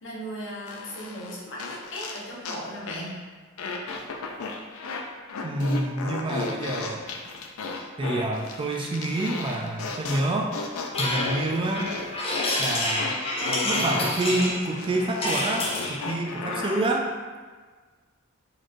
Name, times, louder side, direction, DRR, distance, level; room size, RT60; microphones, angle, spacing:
voice 1, 0.0-3.2, equal, 65° left, -5 dB, 1.0 m, -37 dB
sound 1, 0.7-2.6 2.9-3.1 3.6-5.0 5.3-16.9, left 3 dB, 90° left, 0.4 m, -34 dB
voice 2, 5.4-7.1 8.0-10.6 11.0-11.9 12.6-13.1 13.4-17.1, right 2 dB, 25° right, 1 dB, 0.3 m, -28 dB
sound 2, 10.9-16.0, left 1 dB, 30° left, 0.5 m, -28 dB
4.1 x 3.1 x 2.5 m, 1.4 s
head